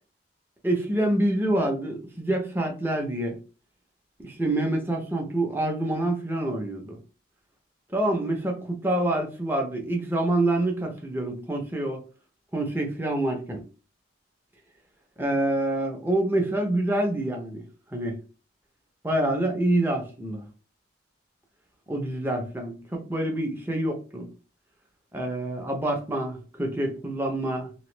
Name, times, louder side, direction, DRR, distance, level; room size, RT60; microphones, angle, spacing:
voice 1, 0.6-3.4 4.2-7.0 7.9-12.0 12.5-13.6 15.2-17.6 17.9-18.2 19.0-20.4 21.9-24.3 25.1-27.7, right 1 dB, 10° right, 0.7 m, -26 dB
3.0 x 2.3 x 3.2 m
head